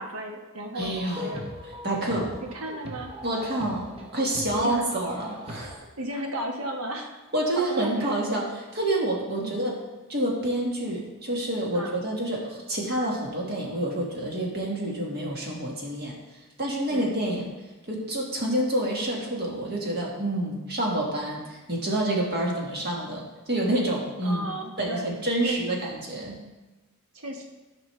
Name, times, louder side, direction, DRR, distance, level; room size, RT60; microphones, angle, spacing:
voice 1, 0.0-1.5 2.4-3.1 4.6-4.8 6.0-7.1 7.5-8.1 9.4-9.7 11.7-12.0 16.9-17.1 24.2-25.8 27.1-27.4, right 1 dB, 75° right, 1 dB, 1.2 m, -35 dB
voice 2, 0.7-1.4 1.8-2.3 3.2-5.7 7.3-9.8 10.1-16.2 16.6-17.5 17.9-24.4 24.8-26.4, right 1 dB, 45° right, -2 dB, 1.7 m, -28 dB
sound 1, 0.8-5.8, left 1 dB, 25° right, 0.8 m, -39 dB
12.5 x 5.3 x 3.2 m, 1.1 s
head